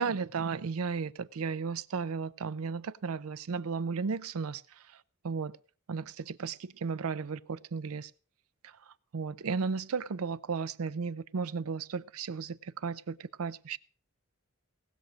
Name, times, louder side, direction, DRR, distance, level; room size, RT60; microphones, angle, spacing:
voice 1, 0.0-4.6 5.2-5.5 5.9-8.1 8.6-8.7 9.1-13.8, right 5 dB, 80° right, 0.5 m, -34 dB
18.5 x 6.5 x 6.1 m
head